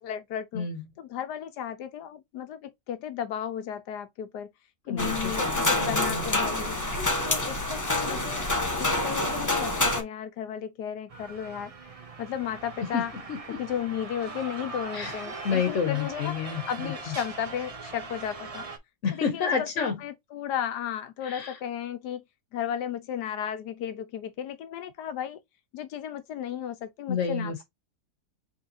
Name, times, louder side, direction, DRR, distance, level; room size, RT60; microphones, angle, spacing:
voice 1, 0.0-0.7 1.0-4.5 4.9-6.8 7.2-11.7 12.2-13.1 13.6-18.7 19.1-22.2 22.5-25.4 25.7-27.6, left 9 dB, 85° left, 1.4 m, -34 dB
voice 2, 4.9-6.4 12.9-13.6 14.9-15.2 15.4-16.9 19.0-20.0 21.2-21.6 27.1-27.6, left 6 dB, 50° left, 1.2 m, -30 dB
sound 1, 5.0-10.0, left 1 dB, 15° left, 0.7 m, -27 dB
sound 2, 11.1-18.8, right 4 dB, 35° right, 0.6 m, -41 dB
5.5 x 3.5 x 2.7 m
omnidirectional pair, 1.7 m